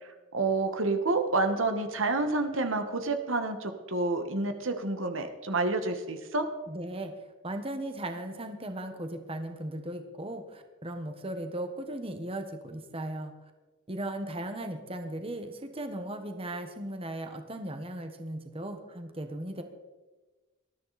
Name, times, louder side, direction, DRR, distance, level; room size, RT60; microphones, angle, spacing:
voice 1, 0.3-6.5, right 3 dB, 70° right, 6 dB, 1.6 m, -29 dB
voice 2, 6.7-7.1 7.4-13.3 13.9-19.6, right 1 dB, 30° right, 6 dB, 1.4 m, -37 dB
20.0 x 13.5 x 4.2 m, 1.2 s
head